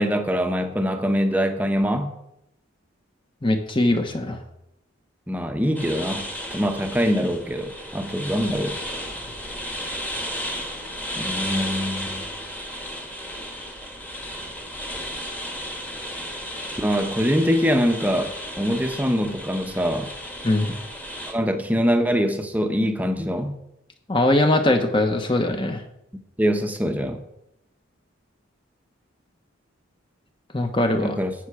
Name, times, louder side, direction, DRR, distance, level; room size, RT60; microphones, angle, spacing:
voice 1, 0.0-2.1 5.3-8.8 11.2-12.2 16.8-20.1 21.3-23.6 26.4-27.2 31.0-31.3, equal, 10° right, 6 dB, 0.9 m, -23 dB
voice 2, 3.4-4.4 20.4-20.7 24.1-25.8 30.5-31.2, left 1 dB, 25° left, 6 dB, 1.1 m, -21 dB
sound 1, 5.7-21.3, equal, 10° left, 1.4 m, -34 dB
12.5 x 9.0 x 4.9 m, 0.81 s
head